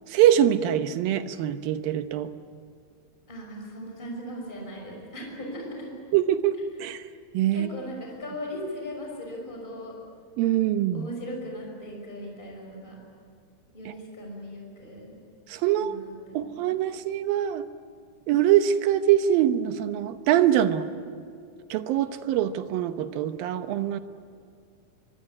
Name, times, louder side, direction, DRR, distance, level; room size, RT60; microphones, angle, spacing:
voice 1, 0.1-2.3 6.1-7.0 7.3-7.7 10.4-11.1 13.9-14.0 15.5-15.9 16.3-17.6 18.3-20.9 21.7-24.0, right 11 dB, 80° right, 10 dB, 2.7 m, -23 dB
voice 2, 3.3-5.9 7.5-9.9 10.9-13.0 13.7-15.1 15.8-16.4, equal, 10° left, 0 dB, 5.9 m, -38 dB
24.0 x 23.5 x 9.7 m, 2.2 s
omnidirectional pair, 4.2 m